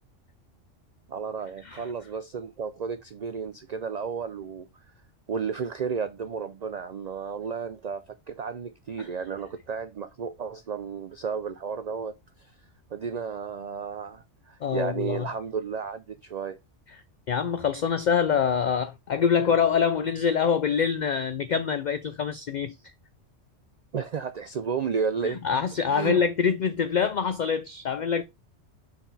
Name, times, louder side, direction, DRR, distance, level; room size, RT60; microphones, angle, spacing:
voice 1, 1.1-4.7 5.3-12.5 12.9-16.6 23.9-25.4 25.9-26.2, right 6 dB, 80° right, 0.3 m, -33 dB
voice 2, 14.6-15.3 17.3-22.8 25.2-28.2, left 7 dB, 60° left, 0.5 m, -25 dB
5.9 x 4.4 x 4.0 m
omnidirectional pair, 1.3 m